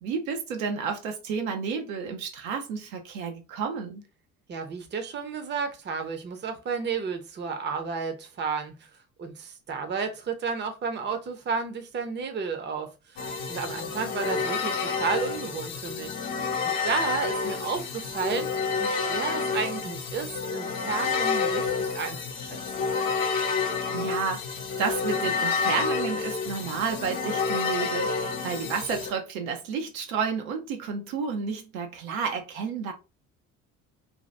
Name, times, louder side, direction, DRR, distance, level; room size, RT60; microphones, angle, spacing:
voice 1, 0.0-4.0 23.9-32.9, right 5 dB, 70° right, 0.7 m, -31 dB
voice 2, 4.5-8.9 9.2-16.2 16.6-18.5 18.8-22.6, right 5 dB, 25° right, 0.7 m, -32 dB
sound 1, 13.2-29.1, left 5 dB, 50° left, 0.9 m, -29 dB
2.7 x 2.3 x 3.2 m
figure-of-eight pair, 55°, 42 cm